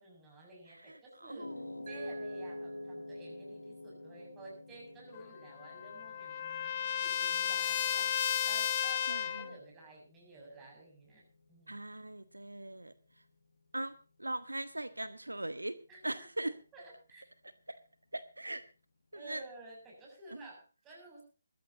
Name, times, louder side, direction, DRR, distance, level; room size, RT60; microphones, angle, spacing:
voice 1, 0.0-1.5 1.9-8.1 8.4-11.2 11.5-11.8 15.9-17.3 19.1-21.2, right 2 dB, 10° right, -2 dB, 7.3 m, -53 dB
voice 2, 0.8-1.7 9.1-9.6 11.7-12.9 13.7-16.5 17.7-17.8 18.1-18.6 19.1-19.4 20.3-20.5, right 1 dB, 85° right, 12 dB, 1.1 m, -40 dB
sound 1, 1.4-19.7, left 2 dB, 75° left, 6.3 m, -53 dB
Mallet percussion, 1.9-4.8, equal, 45° right, 3.9 m, -45 dB
Trumpet, 5.1-9.5, left 9 dB, 30° left, 1.1 m, -33 dB
21.5 x 14.0 x 2.9 m, 0.34 s
figure-of-eight pair, 150°, 0 cm